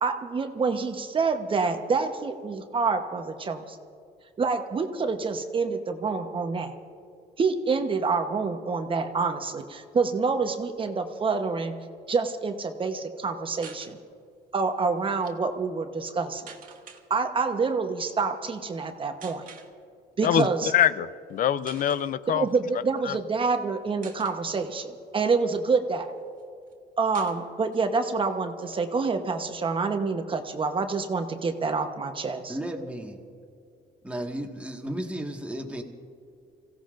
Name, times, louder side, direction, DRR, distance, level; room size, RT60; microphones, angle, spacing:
voice 1, 0.0-3.8 4.4-6.7 7.4-11.7 12.1-14.0 14.5-16.5 17.1-19.4 20.2-20.7 22.3-26.1 27.0-32.5, right 4 dB, 30° right, 6 dB, 1.0 m, -27 dB
sound 1, 13.5-13.9 15.0-15.4 16.5-17.0 18.1-18.3 19.2-19.7 20.7-20.9 21.3-21.4 21.6-22.1 23.0-23.6 24.0-24.4 25.0-26.1 26.4-26.5 26.7-26.8 27.1-27.9 28.2-28.3 28.6-29.7, right 7 dB, 55° right, 1.7 m, -48 dB
voice 2, 20.2-22.5 23.0-23.2, left 10 dB, 50° left, 15 dB, 0.6 m, -24 dB
voice 3, 32.5-33.2 34.0-35.8, right 1 dB, 5° right, 1 dB, 1.7 m, -34 dB
30.0 x 16.5 x 2.6 m, 2.4 s
cardioid pair, 110°, 17 cm